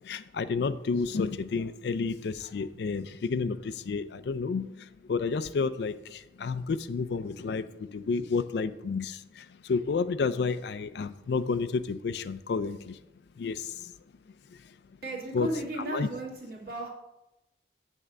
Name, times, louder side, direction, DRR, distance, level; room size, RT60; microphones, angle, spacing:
voice 1, 0.0-13.0 13.4-13.9 15.3-15.5 15.9-16.1, left 4 dB, 60° left, 14 dB, 0.4 m, -31 dB
voice 2, 15.0-16.9, right 2 dB, 55° right, -2 dB, 1.8 m, -35 dB
8.0 x 3.6 x 6.5 m, 0.93 s
head